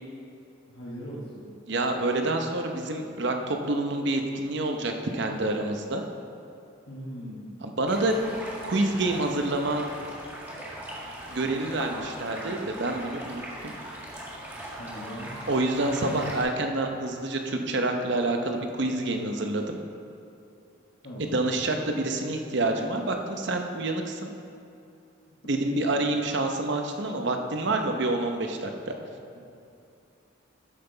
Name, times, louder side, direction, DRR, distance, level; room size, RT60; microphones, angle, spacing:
voice 1, 0.7-1.5 6.9-7.5 14.8-15.3 21.0-21.4 25.4-26.0 29.3-29.4, equal, 60° left, -8 dB, 1.4 m, -40 dB
voice 2, 1.7-6.0 7.6-8.2 8.6-9.8 11.3-13.7 15.5-19.8 21.3-24.3 25.5-28.9, right 2 dB, 55° right, 4 dB, 0.8 m, -27 dB
Stream, 7.9-16.4, right 1 dB, 10° right, 1.8 m, -40 dB
12.5 x 6.0 x 3.9 m, 2.7 s
head